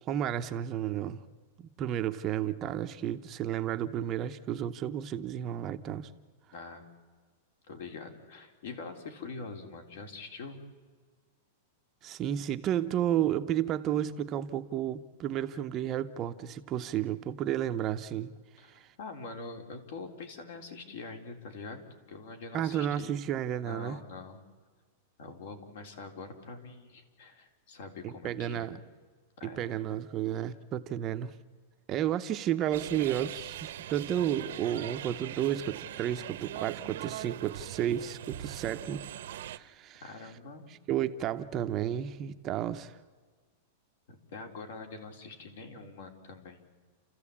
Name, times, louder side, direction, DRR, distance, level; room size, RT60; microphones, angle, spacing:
voice 1, 0.1-1.2 1.6-6.1 12.0-18.3 18.7-18.9 22.5-24.0 28.0-28.8 29.4-31.3 31.9-39.0 39.5-40.0 40.9-43.0, right 11 dB, 25° right, 8 dB, 0.7 m, -32 dB
voice 2, 6.5-6.8 7.7-10.6 18.6-23.1 23.6-24.4 25.2-28.7 29.4-29.8 40.0-40.7 44.1-46.6, left 4 dB, 65° left, 6 dB, 3.7 m, -44 dB
sound 1, 32.7-39.6, right 12 dB, 65° right, 0.9 m, -41 dB
30.0 x 14.5 x 8.6 m, 1.5 s
supercardioid pair, 170°, 0 cm